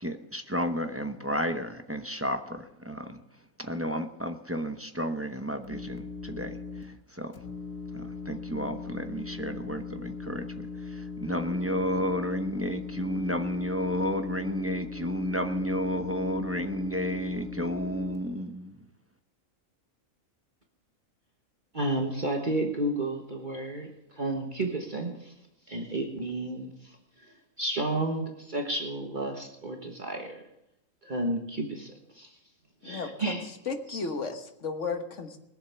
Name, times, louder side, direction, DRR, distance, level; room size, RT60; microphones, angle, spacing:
voice 1, 0.0-3.2 3.6-6.6 7.2-7.3 7.9-10.7 11.0-18.8, equal, 15° right, 6 dB, 0.7 m, -32 dB
sound 1, 5.6-6.8 7.3-18.2, left 4 dB, 80° left, 1.6 m, -39 dB
voice 2, 21.7-23.9 24.1-25.3 25.7-27.0 27.6-30.4 31.0-32.3 32.8-33.4 33.9-34.0, right 2 dB, 40° right, 2 dB, 1.5 m, -31 dB
voice 3, 32.8-35.4, left 4 dB, 65° left, 6 dB, 1.6 m, -34 dB
21.0 x 7.4 x 6.9 m, 0.87 s
omnidirectional pair, 1.4 m